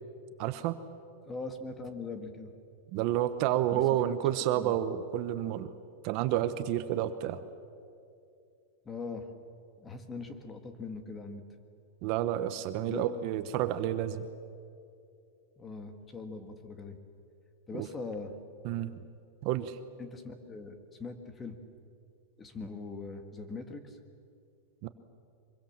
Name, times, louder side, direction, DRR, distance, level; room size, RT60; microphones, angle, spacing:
voice 1, 0.4-0.8 2.9-5.7 6.0-7.4 12.0-14.3 17.8-17.9 18.6-18.9 19.4-19.8 24.8-24.9, right 12 dB, 45° right, 11 dB, 1.0 m, -30 dB
voice 2, 1.2-2.5 3.7-4.1 4.4-4.8 8.8-9.3 9.8-11.4 12.9-13.2 15.6-17.0 17.7-18.3 20.0-21.6 22.4-24.0, left 3 dB, 15° left, 7 dB, 1.8 m, -41 dB
25.0 x 22.5 x 7.4 m, 2.5 s
supercardioid pair, 155°, 0 cm